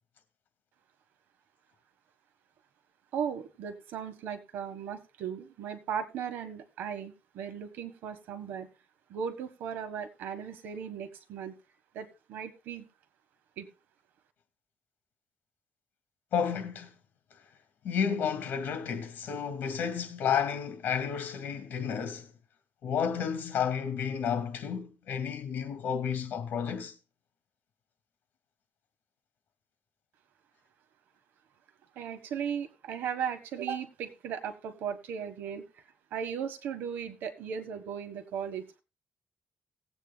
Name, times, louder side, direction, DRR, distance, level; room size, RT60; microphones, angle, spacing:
voice 1, 3.1-8.7 9.1-11.6 11.9-12.9 13.6-13.7 31.9-35.7 36.1-38.8, right 7 dB, 90° right, 1.4 m, -37 dB
voice 2, 16.3-16.9 17.8-22.3 22.8-26.9, left 7 dB, 70° left, 2.2 m, -31 dB
19.0 x 8.4 x 2.3 m
cardioid pair, 115°, 3 cm